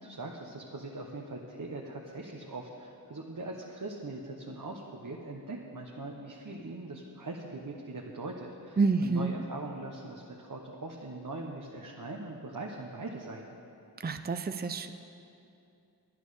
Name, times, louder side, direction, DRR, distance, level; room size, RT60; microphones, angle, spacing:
voice 1, 0.0-13.6, right 2 dB, 50° right, -1 dB, 1.2 m, -41 dB
voice 2, 8.8-9.3 14.0-14.9, right 4 dB, 25° right, 8 dB, 0.6 m, -28 dB
10.5 x 10.5 x 6.5 m, 2.6 s
cardioid pair, 45°, 39 cm